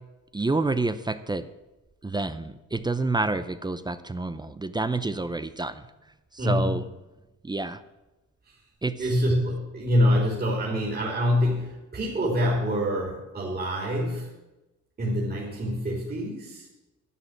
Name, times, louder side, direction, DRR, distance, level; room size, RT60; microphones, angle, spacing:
voice 1, 0.3-1.4 2.0-5.7 6.4-6.8 7.4-7.8 8.8-9.0, right 2 dB, 15° right, 12 dB, 0.7 m, -28 dB
voice 2, 6.4-6.8 9.0-14.3 15.0-16.7, equal, 30° right, -3 dB, 3.2 m, -25 dB
11.0 x 7.9 x 7.3 m, 1.0 s
cardioid pair, 90°, 30 cm